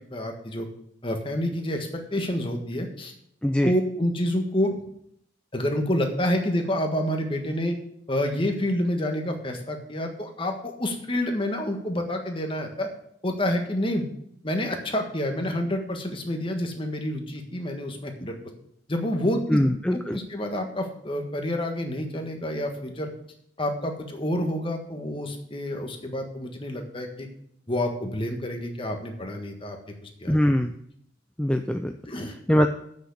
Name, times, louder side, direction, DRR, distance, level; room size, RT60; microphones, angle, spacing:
voice 1, 0.1-0.7 1.0-3.1 3.6-4.8 5.5-7.8 8.1-12.9 13.2-14.1 14.4-18.4 18.9-19.6 19.9-23.1 23.6-27.3 27.7-29.8 30.0-30.4 32.1-32.3, left 1 dB, 25° left, 3 dB, 1.5 m, -28 dB
voice 2, 3.4-3.7 19.5-20.2 30.3-30.7 31.4-32.0 32.5-32.7, equal, 5° left, 5 dB, 0.4 m, -22 dB
8.0 x 6.5 x 8.1 m, 0.72 s
head